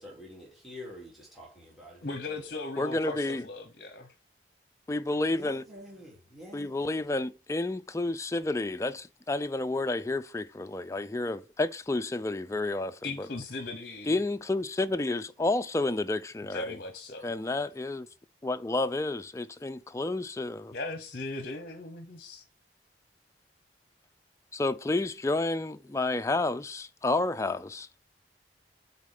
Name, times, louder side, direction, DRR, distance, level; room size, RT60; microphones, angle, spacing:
voice 1, 0.0-2.4 5.3-6.8, left 1 dB, ahead, 2.6 m, -47 dB
voice 2, 2.0-4.1 13.0-14.2 16.5-17.3 20.7-22.4, left 2 dB, 50° left, 1.0 m, -38 dB
voice 3, 2.8-3.4 4.9-5.6 6.5-13.3 14.1-16.8 17.2-18.1 18.4-20.7 24.5-27.9, left 2 dB, 15° left, 0.4 m, -30 dB
8.3 x 4.2 x 3.4 m
head